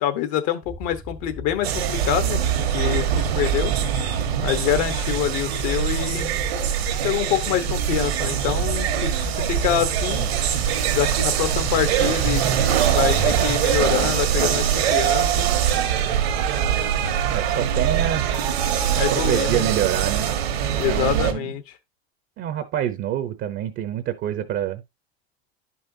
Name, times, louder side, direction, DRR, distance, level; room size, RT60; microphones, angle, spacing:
voice 1, 0.0-3.8 4.4-6.3 7.0-10.3 10.9-12.5 12.9-15.5 19.0-19.7 20.8-21.7, left 11 dB, 55° left, 1.2 m, -26 dB
sound 1, 0.6-19.0, left 3 dB, ahead, 0.6 m, -37 dB
sound 2, 1.6-21.3, right 9 dB, 75° right, 1.6 m, -23 dB
voice 2, 17.3-18.3 18.9-20.3 20.8-21.5 22.4-24.8, right 11 dB, 40° right, 0.8 m, -27 dB
11.0 x 5.5 x 2.7 m
hypercardioid pair, 100°, 31 cm